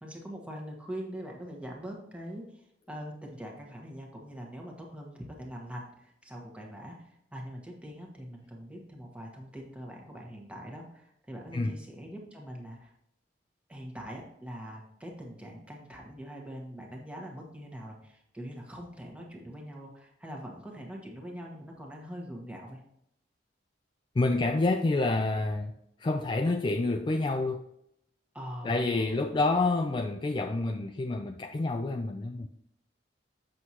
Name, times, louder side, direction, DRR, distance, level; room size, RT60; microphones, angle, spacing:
voice 1, 0.0-12.9 13.7-22.8 28.3-29.3, equal, 5° right, 0 dB, 1.3 m, -43 dB
voice 2, 24.2-25.7 26.0-27.6 28.6-32.5, left 2 dB, 25° left, 4 dB, 0.3 m, -28 dB
7.7 x 6.3 x 2.8 m, 0.76 s
head